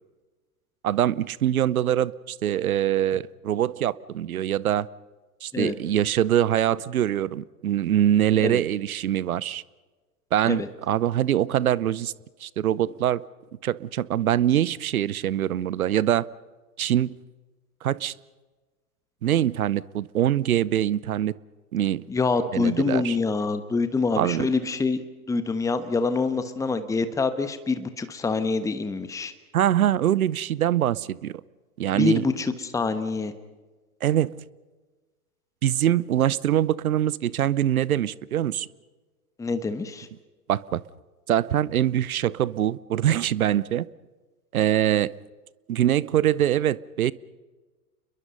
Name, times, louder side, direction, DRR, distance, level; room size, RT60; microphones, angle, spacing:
voice 1, 0.8-4.9 5.4-9.6 10.3-12.1 12.4-13.2 13.6-16.3 16.8-17.1 17.8-18.1 19.2-21.3 21.7-22.0 22.5-23.2 24.1-24.5 29.5-31.4 31.8-32.3 34.0-34.4 35.6-38.7 40.5-40.8 41.3-43.9 44.5-45.1 45.7-47.1, right 11 dB, 65° right, 0.8 m, -23 dB
voice 2, 22.1-25.0 25.3-29.3 31.9-33.3 39.4-40.1, left 4 dB, 5° left, 1.2 m, -26 dB
29.5 x 22.0 x 5.4 m
figure-of-eight pair, 100°, 46 cm